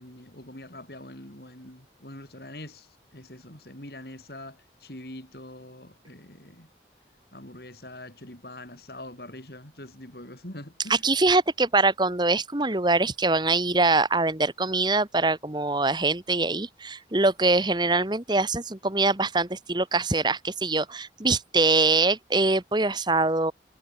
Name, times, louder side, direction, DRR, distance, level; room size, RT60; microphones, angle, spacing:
voice 1, 0.0-6.7 7.3-11.0, left 1 dB, 60° left, 6.0 m, -44 dB
voice 2, 10.9-23.5, right 3 dB, 25° right, 1.5 m, -23 dB
head